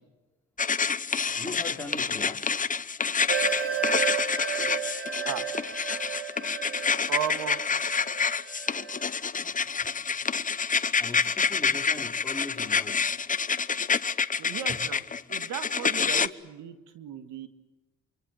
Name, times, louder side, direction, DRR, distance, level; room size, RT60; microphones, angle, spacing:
sound 1, 0.6-16.3, left 5 dB, 25° left, 0.9 m, -27 dB
voice 1, 1.4-2.4 4.6-4.8 9.8-10.2 11.0-13.0, left 2 dB, 5° left, 1 dB, 4.8 m, -40 dB
sound 2, 3.3-9.0, right 7 dB, 50° right, 2.6 m, -33 dB
voice 2, 7.1-7.6 14.4-15.0 15.3-17.5, right 10 dB, 90° right, 10 dB, 2.0 m, -36 dB
26.0 x 25.0 x 7.7 m, 1.1 s
cardioid pair, 90°, 30 cm